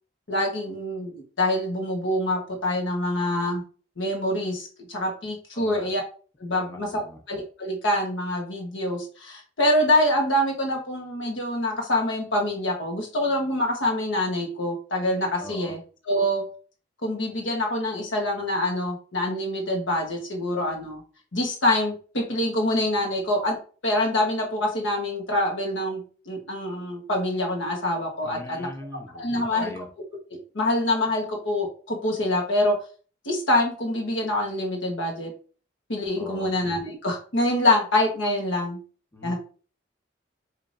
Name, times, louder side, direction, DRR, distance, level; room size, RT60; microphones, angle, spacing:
voice 1, 0.3-3.6 4.0-6.0 6.4-7.0 7.3-15.8 16.1-16.5 17.0-21.0 21.3-23.6 23.8-28.7 29.2-29.7 30.3-32.8 33.2-35.3 35.9-38.8 39.2-39.4, left 1 dB, 90° left, 1 dB, 1.2 m, -25 dB
voice 2, 5.5-5.9 6.5-7.2 15.4-15.7 28.2-29.9 36.2-36.5 39.1-39.4, left 1 dB, 15° left, 3 dB, 0.7 m, -40 dB
4.9 x 2.8 x 2.6 m, 0.39 s
head